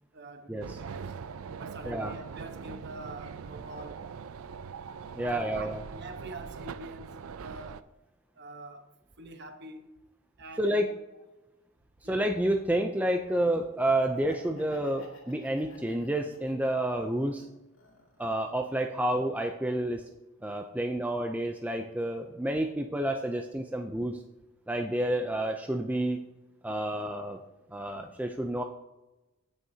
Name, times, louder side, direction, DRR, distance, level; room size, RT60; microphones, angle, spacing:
voice 1, 0.1-1.1 1.6-4.1 5.2-7.8 8.3-8.9 9.2-9.9 10.4-10.9 11.1-11.2 12.0-12.2, right 2 dB, 50° right, 1.0 m, -45 dB
sound 1, 0.6-7.8, right 6 dB, 70° right, 0.4 m, -42 dB
voice 2, 5.1-5.8 10.6-10.9 12.1-17.5 18.2-20.0 20.4-24.2 24.7-26.2 26.6-27.4 27.7-28.6, right 1 dB, 5° right, 0.4 m, -29 dB
Laughter, 13.7-16.9 17.3-18.4, left 1 dB, 60° left, 2.4 m, -53 dB
16.5 x 6.5 x 2.8 m
head